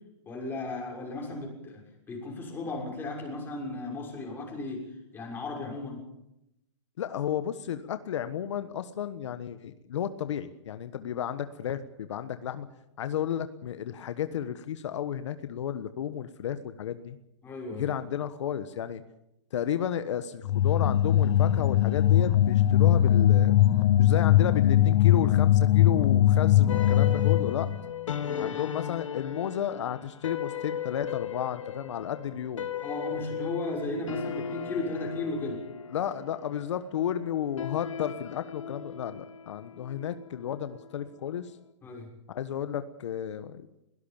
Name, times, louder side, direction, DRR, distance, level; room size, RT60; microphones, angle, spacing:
voice 1, 0.3-4.9 5.1-6.0 17.4-17.9 28.2-28.6 32.8-35.6 41.8-42.1, left 2 dB, 15° left, -1 dB, 6.5 m, -35 dB
voice 2, 7.0-12.7 13.0-17.2 17.8-19.0 19.5-23.6 24.0-27.7 28.4-32.7 35.9-41.6 42.3-43.7, left 10 dB, 70° left, 10 dB, 1.3 m, -32 dB
sound 1, 20.4-27.8, left 12 dB, 55° left, 1.3 m, -21 dB
sound 2, 26.7-41.2, left 8 dB, 90° left, 1.4 m, -37 dB
22.0 x 18.0 x 7.3 m, 0.85 s
hypercardioid pair, 150°, 16 cm